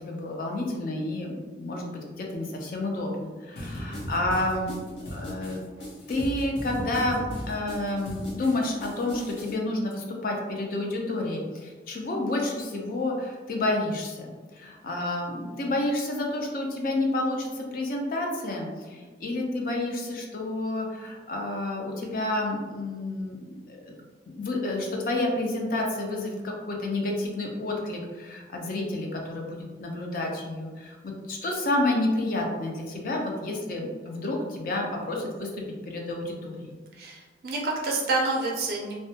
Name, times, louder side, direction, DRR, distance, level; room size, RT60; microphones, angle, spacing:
voice 1, 0.0-4.8 5.1-5.6 6.1-24.0 24.4-35.5 35.9-36.8, left 2 dB, 50° left, 0 dB, 0.4 m, -30 dB
sound 1, 3.6-9.5, left 1 dB, 70° left, 0.8 m, -37 dB
voice 2, 3.6-4.1 36.9-38.9, right 2 dB, 55° right, -2 dB, 0.4 m, -29 dB
2.2 x 2.1 x 2.7 m, 1.4 s
head